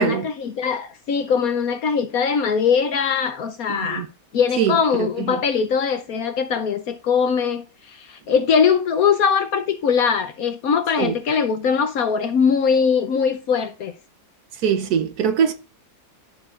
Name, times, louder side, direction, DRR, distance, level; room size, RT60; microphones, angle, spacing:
voice 1, 0.0-4.0 4.3-13.9, left 6 dB, 65° left, 1.0 m, -21 dB
voice 2, 3.7-4.1 4.6-5.4 11.0-11.1 14.6-15.5, right 8 dB, 65° right, 1.1 m, -22 dB
14.0 x 4.7 x 2.4 m
omnidirectional pair, 2.0 m